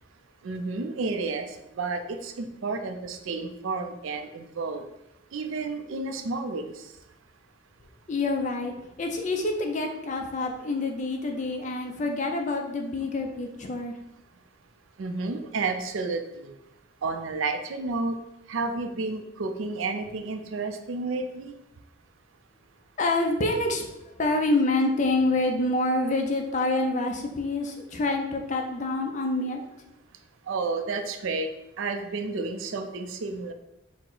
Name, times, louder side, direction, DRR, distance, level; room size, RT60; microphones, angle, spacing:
voice 1, 0.4-1.5 1.7-4.8 5.3-6.9 15.0-16.5 17.0-18.2 18.5-21.5 30.5-31.5 31.8-33.5, right 3 dB, 75° right, 7 dB, 0.4 m, -31 dB
voice 2, 8.1-13.9 23.0-23.9 24.2-29.6, left 2 dB, 35° left, 3 dB, 0.4 m, -27 dB
4.6 x 2.1 x 3.8 m, 0.88 s
head